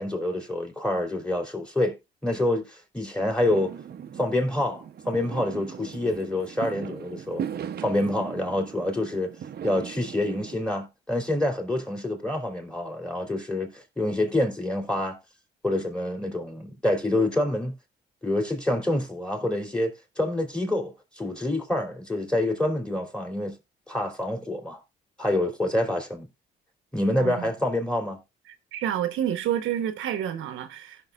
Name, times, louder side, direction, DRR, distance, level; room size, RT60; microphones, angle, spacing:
voice 1, 0.0-1.9 2.2-3.7 4.2-7.4 7.8-9.3 9.6-15.2 15.6-17.7 18.2-23.5 23.9-24.8 25.2-26.3 26.9-28.2, left 1 dB, 5° left, 3.1 m, -27 dB
Fireworks, 3.4-10.5, right 8 dB, 50° right, 0.8 m, -38 dB
voice 2, 28.7-31.1, right 10 dB, 85° right, 1.0 m, -29 dB
16.0 x 6.0 x 2.4 m
cardioid pair, 90°, 20 cm